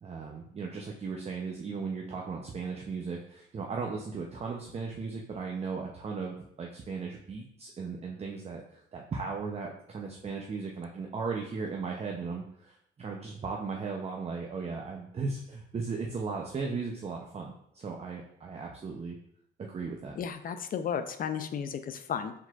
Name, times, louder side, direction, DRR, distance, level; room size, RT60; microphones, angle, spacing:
voice 1, 0.0-19.2 19.6-20.2, right 4 dB, 30° right, 1 dB, 0.6 m, -37 dB
voice 2, 20.2-22.3, left 7 dB, 45° left, 9 dB, 0.4 m, -34 dB
4.6 x 3.9 x 2.4 m, 0.72 s
cardioid pair, 90°, 20 cm